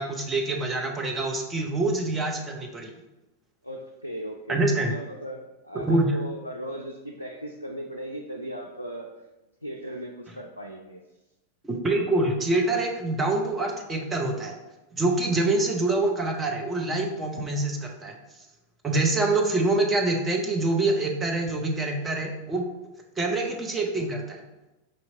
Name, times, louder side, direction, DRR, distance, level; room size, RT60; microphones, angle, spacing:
voice 1, 0.0-2.9 4.5-4.9 5.7-6.1 11.6-14.5 14.9-18.2 18.8-22.6 23.2-24.4, right 2 dB, 15° right, 1 dB, 0.7 m, -25 dB
voice 2, 3.6-9.1 9.6-11.0, right 1 dB, 90° left, 0 dB, 0.3 m, -37 dB
5.1 x 2.8 x 2.7 m, 1.0 s
figure-of-eight pair, 90°, 0 cm